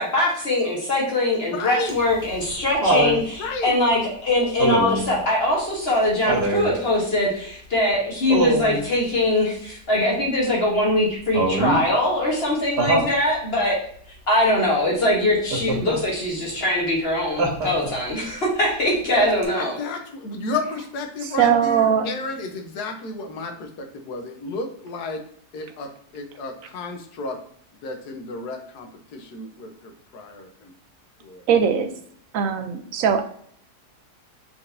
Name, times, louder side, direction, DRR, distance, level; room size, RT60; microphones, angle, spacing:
voice 1, 0.0-13.8 14.3-19.8, left 1 dB, 40° left, -2 dB, 1.2 m, -22 dB
voice 2, 1.4-2.0 3.4-3.7 19.1-19.3 19.6-25.2 25.5-27.4 27.8-30.7 31.2-31.5, left 3 dB, 75° left, 5 dB, 1.4 m, -32 dB
Laughter, 1.9-3.2 4.6-5.1 6.3-6.7 8.3-8.8 11.3-11.8 12.8-13.1 15.5-16.0 17.4-18.0 19.4-19.5, right 2 dB, 85° right, 1.8 m, -22 dB
voice 3, 21.2-22.1 31.5-31.9 32.3-33.2, right 8 dB, 65° right, 8 dB, 0.9 m, -20 dB
4.4 x 4.4 x 2.6 m, 0.62 s
omnidirectional pair, 1.7 m